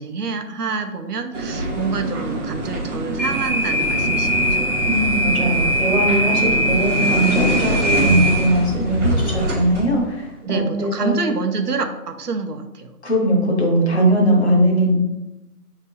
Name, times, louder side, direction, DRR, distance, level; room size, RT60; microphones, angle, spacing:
voice 1, 0.0-4.6 7.5-7.9 10.4-12.9, right 4 dB, 85° right, 7 dB, 0.7 m, -27 dB
sound 1, 1.3-9.9, right 1 dB, 50° right, 1.1 m, -21 dB
voice 2, 4.9-11.2 13.0-15.0, right 1 dB, 45° left, -2 dB, 1.3 m, -19 dB
5.5 x 3.0 x 2.7 m, 0.98 s
figure-of-eight pair, 165°, 46 cm